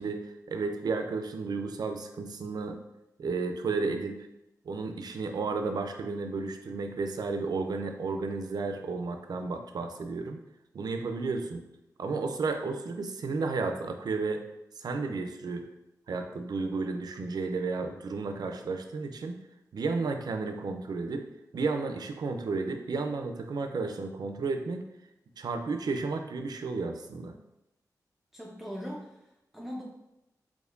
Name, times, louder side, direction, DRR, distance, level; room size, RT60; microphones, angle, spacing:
voice 1, 0.0-2.8 3.2-4.3 4.6-10.4 10.7-11.6 12.0-14.4 14.8-15.7 16.1-19.4 19.7-21.3 21.5-24.8 25.4-27.3, right 4 dB, 75° right, 6 dB, 0.4 m, -32 dB
voice 2, 28.3-29.8, equal, 5° right, -3 dB, 0.5 m, -40 dB
4.3 x 3.0 x 2.4 m, 0.88 s
wide cardioid pair, 70°, 7 cm